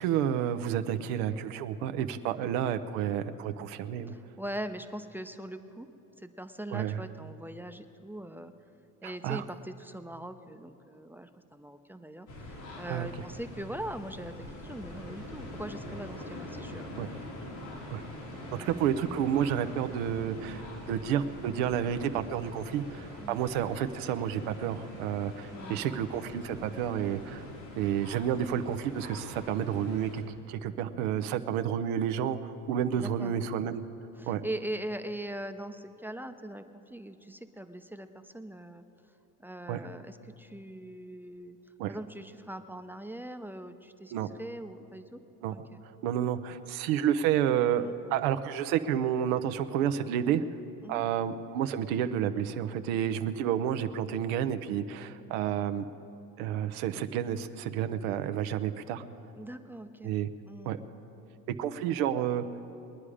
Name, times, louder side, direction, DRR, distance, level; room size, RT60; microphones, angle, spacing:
voice 1, 0.0-4.1 6.7-7.0 9.0-9.4 12.9-13.1 17.0-17.1 17.9-18.0 18.5-27.4 27.8-33.8 34.3-34.4 39.7-39.8 41.8-42.0 44.1-44.3 45.4-45.6 46.0-50.4 50.9-55.9 56.4-59.0 60.0-60.3 60.7-60.8 61.6-62.4, right 9 dB, 90° right, 9 dB, 0.8 m, -30 dB
voice 2, 4.1-5.9 6.2-8.5 9.0-17.4 18.4-18.6 20.5-20.6 23.2-23.4 25.5-25.8 32.9-33.4 34.2-38.8 39.4-41.6 41.9-45.2 45.5-45.8 47.8-47.9 50.8-51.1 59.3-60.2 60.5-60.8, right 1 dB, 5° right, 8 dB, 0.6 m, -41 dB
sound 1, 12.3-30.2, left 1 dB, 90° left, 3.8 m, -44 dB
22.0 x 9.8 x 4.9 m, 2.9 s
supercardioid pair, 95°, 41 cm